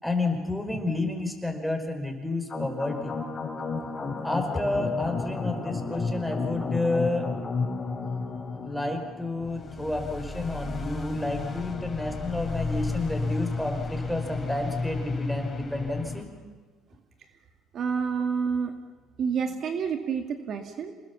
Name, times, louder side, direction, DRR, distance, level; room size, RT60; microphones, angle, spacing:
voice 1, 0.0-3.1 4.2-7.3 8.6-16.3, left 2 dB, ahead, 5 dB, 4.9 m, -30 dB
sound 1, 2.5-16.2, left 3 dB, 30° left, 4.5 m, -32 dB
voice 2, 17.7-18.7 19.2-20.9, right 6 dB, 55° right, 6 dB, 2.1 m, -28 dB
28.0 x 20.5 x 7.3 m, 1.4 s
supercardioid pair, 90°, 0 cm